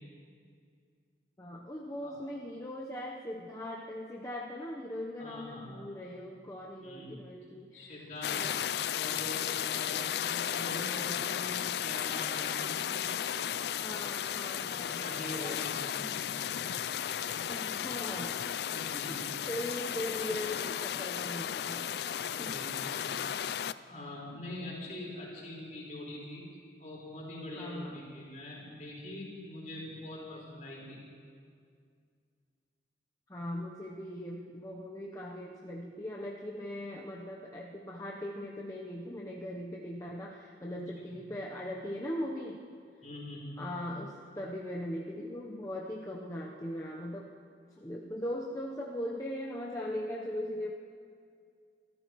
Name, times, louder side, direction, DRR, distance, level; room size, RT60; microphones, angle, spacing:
voice 1, 1.4-8.6 13.6-15.6 17.5-18.4 19.1-21.9 22.4-22.6 27.5-28.0 33.3-42.6 43.6-47.3 47.7-50.7, left 1 dB, 20° left, -3 dB, 0.9 m, -40 dB
voice 2, 5.2-5.7 6.8-7.2 7.7-8.4 8.9-12.9 14.5-16.4 18.7-19.3 22.3-23.1 23.9-26.4 26.8-31.0 41.0-41.1 43.0-43.7, left 1 dB, 45° left, -5 dB, 4.6 m, -43 dB
sound 1, 8.2-23.7, left 9 dB, 65° left, 0.3 m, -34 dB
26.0 x 14.0 x 3.1 m, 2.2 s
head